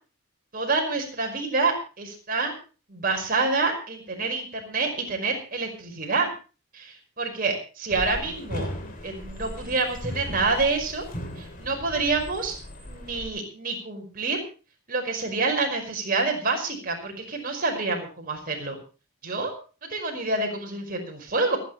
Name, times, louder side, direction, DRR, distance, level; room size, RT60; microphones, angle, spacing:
voice 1, 0.5-2.5 2.9-6.3 6.7-8.7 9.0-11.0 11.4-12.5 12.8-14.4 14.9-18.8 19.2-19.5 19.9-21.6, right 3 dB, 40° right, 2 dB, 5.1 m, -27 dB
sound 1, 7.9-13.3, left 1 dB, 40° left, 2.8 m, -37 dB
29.0 x 10.0 x 3.2 m, 0.35 s
head